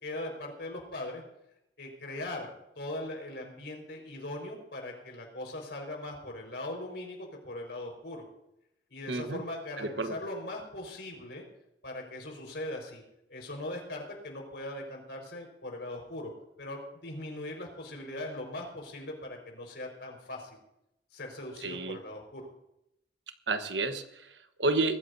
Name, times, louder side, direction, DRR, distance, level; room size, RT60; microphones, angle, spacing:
voice 1, 0.0-1.2 1.8-8.2 8.9-11.4 11.8-13.0 13.3-16.3 16.6-20.6 21.1-22.5, left 1 dB, 70° left, 2 dB, 4.9 m, -40 dB
voice 2, 9.1-9.4 9.8-10.1 21.6-22.0 23.5-25.0, right 3 dB, 85° right, 8 dB, 1.3 m, -31 dB
22.0 x 14.5 x 2.7 m, 0.83 s
head